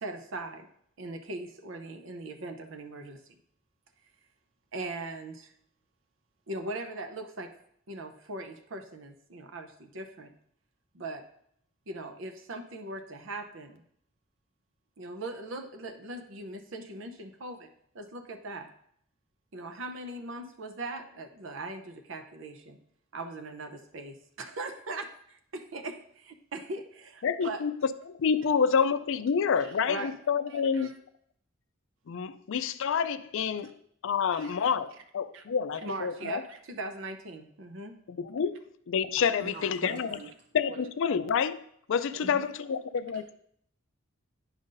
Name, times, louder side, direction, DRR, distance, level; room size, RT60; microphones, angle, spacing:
voice 1, 0.0-0.7 1.0-3.2 4.7-5.5 6.5-7.6 7.9-10.3 10.9-11.3 11.9-13.8 15.0-17.7 17.9-18.7 19.5-22.8 23.1-27.6 29.9-30.1 30.7-30.9 34.3-34.6 35.3-35.4 35.8-38.0 42.2-42.4, right 2 dB, 65° right, 7 dB, 0.7 m, -40 dB
voice 2, 27.2-27.7 28.0-31.0 32.1-33.7 34.0-36.4 38.1-38.6 38.9-40.2 40.5-41.6 41.9-43.3, left 6 dB, 65° left, 13 dB, 0.4 m, -28 dB
voice 3, 39.4-40.3 40.7-40.8 42.2-42.3, right 4 dB, 35° right, 5 dB, 0.4 m, -43 dB
9.8 x 5.5 x 2.6 m, 0.68 s
head